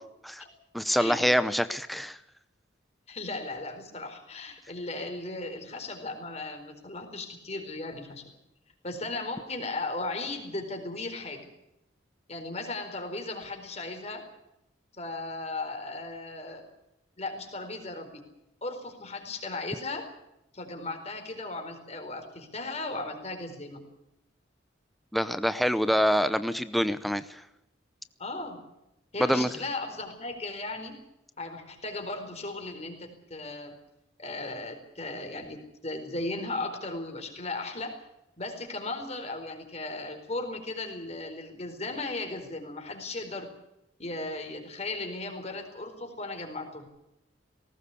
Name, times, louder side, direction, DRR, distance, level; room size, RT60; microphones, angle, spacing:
voice 1, 0.7-2.2 25.1-27.4 29.2-29.5, equal, ahead, 12 dB, 0.7 m, -25 dB
voice 2, 3.1-8.3 8.8-11.5 12.3-14.3 15.0-16.7 17.2-18.2 18.6-20.1 20.5-23.9 28.2-28.6 29.1-31.0 31.4-33.8 34.2-38.0 38.4-43.5 44.0-46.9, left 2 dB, 35° left, 5 dB, 4.4 m, -36 dB
19.5 x 18.0 x 8.4 m, 0.88 s
head